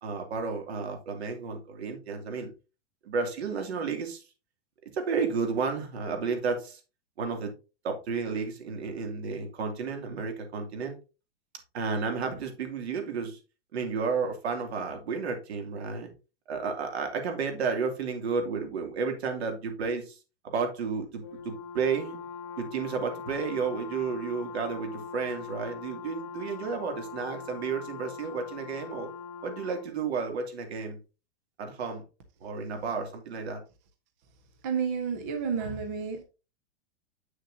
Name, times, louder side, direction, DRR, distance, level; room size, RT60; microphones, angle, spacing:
voice 1, 0.0-2.5 3.0-4.2 4.9-6.8 7.2-7.5 7.8-11.0 11.7-13.4 13.7-16.1 16.5-20.2 20.4-22.2 22.6-29.1 29.4-31.0 31.6-32.0 32.4-33.6, right 5 dB, 75° right, 2.6 m, -32 dB
Brass instrument, 21.2-29.9, left 6 dB, 25° left, 0.8 m, -42 dB
voice 2, 34.6-36.2, right 6 dB, 15° right, 0.4 m, -30 dB
8.1 x 6.4 x 2.7 m
supercardioid pair, 175°, 32 cm